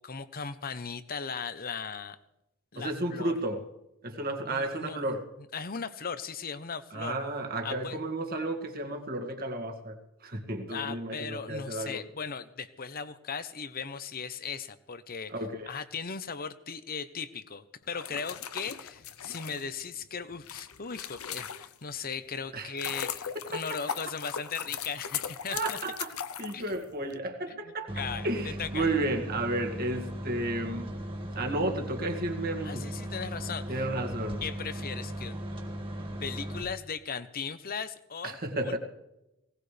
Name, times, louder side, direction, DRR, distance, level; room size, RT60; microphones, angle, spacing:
voice 1, 0.0-2.2 2.7-3.3 4.4-5.2 5.5-7.1 7.6-8.0 10.7-15.3 15.7-25.8 26.5-26.7 27.5-28.3 28.6-28.8 32.6-33.8 34.4-35.4 36.2-38.4 38.6-38.8, left 6 dB, 40° left, 13 dB, 0.9 m, -38 dB
voice 2, 2.8-3.6 4.0-5.2 6.9-12.0 15.3-15.7 22.5-22.7 23.5-23.6 25.5-26.1 26.4-30.9 31.4-32.8 33.7-34.4 38.2-38.8, right 2 dB, 45° right, 3 dB, 2.1 m, -32 dB
sound 1, 17.9-22.0 22.5-27.2, left 8 dB, 70° left, 0.8 m, -38 dB
sound 2, 27.9-36.6, equal, 25° right, 1.8 m, -37 dB
19.5 x 18.5 x 3.4 m, 0.90 s
head